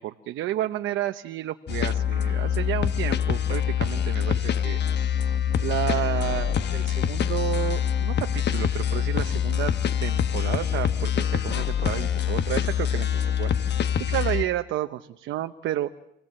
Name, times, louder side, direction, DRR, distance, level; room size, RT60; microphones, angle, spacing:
voice 1, 0.0-4.8 5.6-9.7 10.0-13.5 14.1-15.9, right 13 dB, 90° right, 7 dB, 0.9 m, -31 dB
sound 1, 1.7-14.4, left 9 dB, 60° left, 1.1 m, -25 dB
28.0 x 18.5 x 7.6 m, 0.83 s
cardioid pair, 90°, 20 cm